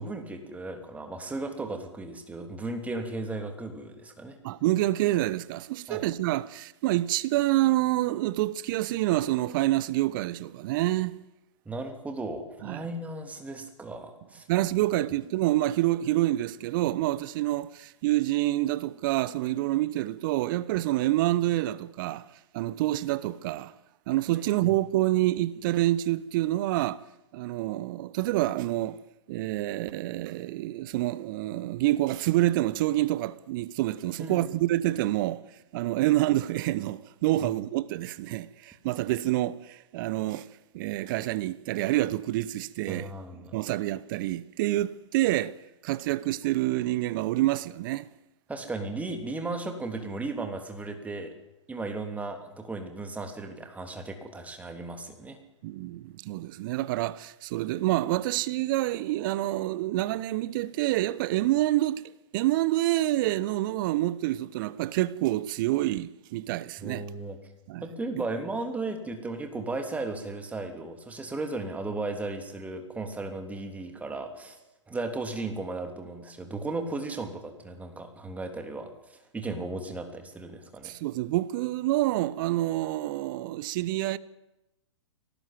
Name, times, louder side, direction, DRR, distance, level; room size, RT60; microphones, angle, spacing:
voice 1, 0.0-4.4 5.9-6.0 11.6-14.5 24.6-24.7 34.2-34.5 37.4-37.5 42.9-43.6 48.5-51.3 51.7-55.4 66.8-67.4 67.8-74.6 74.9-80.9, right 2 dB, 10° right, 3.2 m, -35 dB
voice 2, 4.4-11.2 12.6-12.9 14.5-22.3 22.5-23.7 24.1-27.0 27.3-29.0 29.3-35.4 35.7-40.5 40.7-43.1 43.5-45.6 45.8-48.1 55.6-62.0 62.3-67.1 67.7-67.8 68.2-68.3 80.8-84.2, right 16 dB, 40° right, 0.9 m, -27 dB
22.5 x 18.5 x 9.4 m
figure-of-eight pair, 115°, 16 cm